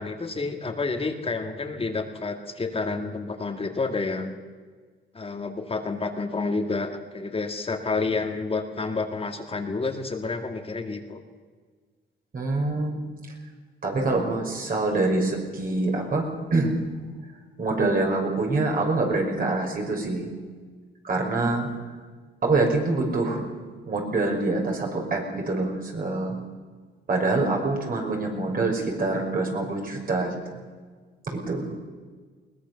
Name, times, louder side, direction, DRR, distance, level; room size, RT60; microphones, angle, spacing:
voice 1, 0.0-4.4 5.1-11.2, left 3 dB, 30° left, 4 dB, 2.2 m, -29 dB
voice 2, 12.3-13.0 13.8-16.8 17.6-20.3 21.0-21.7 22.4-23.4 23.9-26.4 27.1-30.3 31.3-31.7, right 2 dB, 45° right, 1 dB, 6.0 m, -25 dB
21.5 x 19.5 x 7.0 m, 1.5 s
cardioid pair, 90°, 20 cm